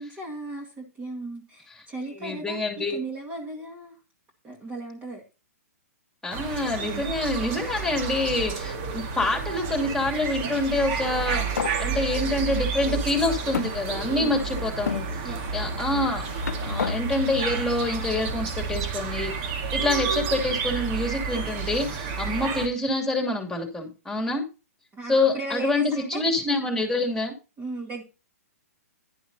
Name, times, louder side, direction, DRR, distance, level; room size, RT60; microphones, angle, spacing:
voice 1, 0.0-4.0 4.4-5.2 6.9-7.0 14.2-14.5 15.2-15.5 24.9-26.2 27.6-28.0, right 2 dB, 20° right, 1 dB, 2.0 m, -36 dB
voice 2, 2.1-3.0 6.2-16.2 16.6-19.3 19.7-24.4 25.1-27.3, left 2 dB, 5° left, 2 dB, 2.6 m, -26 dB
sound 1, 6.3-22.7, right 5 dB, 40° right, 1.9 m, -30 dB
sound 2, 10.9-11.8 12.6-12.7 13.5-14.4 14.9-15.1 15.9-17.0, left 7 dB, 80° left, 0.4 m, -32 dB
11.0 x 10.5 x 2.8 m, 0.31 s
hypercardioid pair, 125°, 9 cm